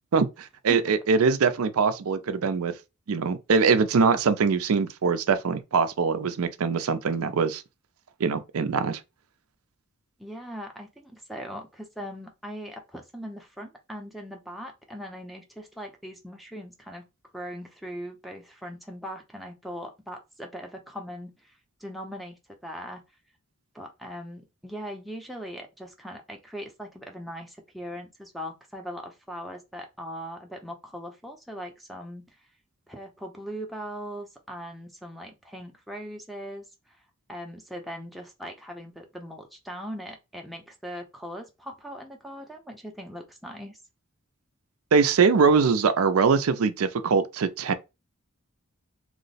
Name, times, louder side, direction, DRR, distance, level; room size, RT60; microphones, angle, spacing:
voice 1, 0.1-2.7 3.1-7.6 8.2-9.0 44.9-47.7, right 5 dB, 75° right, 0.5 m, -22 dB
voice 2, 10.2-17.0 17.3-23.0 23.7-32.4 32.9-37.0 37.3-43.8, equal, ahead, 0.5 m, -40 dB
3.0 x 2.0 x 4.0 m
head